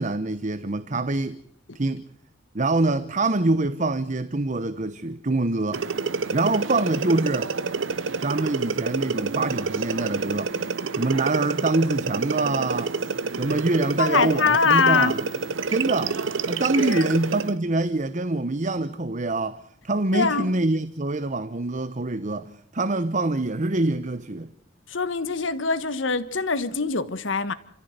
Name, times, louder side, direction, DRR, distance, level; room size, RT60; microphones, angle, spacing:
voice 1, 0.0-1.4 1.7-2.1 2.5-5.8 6.3-7.5 8.2-10.5 10.9-12.9 13.3-15.3 15.7-24.5, right 2 dB, 40° right, 0.9 m, -25 dB
sound 1, 5.7-17.6, right 4 dB, 90° right, 0.9 m, -28 dB
voice 2, 14.0-15.2 16.8-17.1 20.1-20.5 24.9-27.5, left 4 dB, 80° left, 1.4 m, -23 dB
29.0 x 14.5 x 8.1 m
head